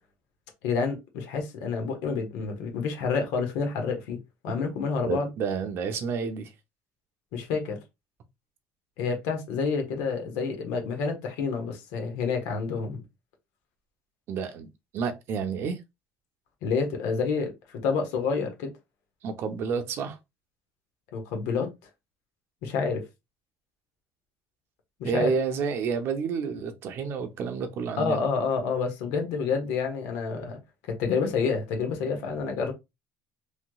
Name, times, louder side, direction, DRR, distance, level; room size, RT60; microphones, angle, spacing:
voice 1, 0.6-4.2 4.4-5.3 7.3-7.8 9.0-13.0 16.6-17.5 17.8-18.7 21.1-21.7 22.6-23.0 25.0-25.3 28.0-30.6 31.0-32.7, left 5 dB, 85° left, 1.2 m, -28 dB
voice 2, 5.0-6.5 14.3-15.8 19.2-20.2 25.0-28.2, right 5 dB, 55° right, 0.6 m, -30 dB
3.2 x 3.0 x 2.2 m
cardioid pair, 120°, 5 cm